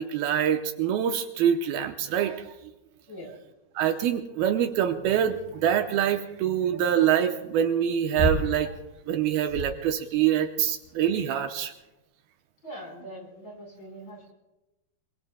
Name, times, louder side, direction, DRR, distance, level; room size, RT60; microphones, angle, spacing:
voice 1, 0.0-2.5 3.8-8.7 9.1-11.7, right 9 dB, 80° right, 6 dB, 2.5 m, -25 dB
sound 1, 5.4-10.9, left 1 dB, 20° right, 4.9 m, -34 dB
voice 2, 12.6-14.3, equal, 30° left, 1 dB, 4.7 m, -42 dB
27.0 x 22.5 x 2.2 m, 1.0 s
omnidirectional pair, 4.5 m